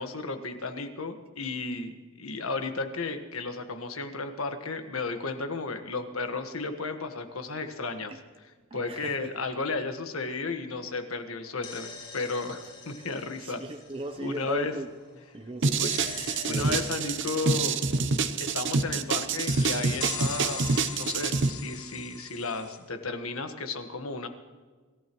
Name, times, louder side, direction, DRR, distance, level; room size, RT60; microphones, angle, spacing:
voice 1, 0.0-8.1 8.7-13.6 14.2-14.7 15.8-15.9 16.5-17.8 18.4-24.3, left 3 dB, 75° left, 6 dB, 1.5 m, -34 dB
voice 2, 8.7-9.3 13.4-14.9 15.3-15.9 16.5-16.8, right 2 dB, 25° right, 5 dB, 0.7 m, -36 dB
sound 1, 11.4-15.1 15.8-19.0 19.4-22.8, left 5 dB, 30° left, 5.5 m, -42 dB
sound 2, 15.6-21.5, right 4 dB, 60° right, 0.8 m, -26 dB
26.0 x 15.0 x 3.1 m, 1.4 s
head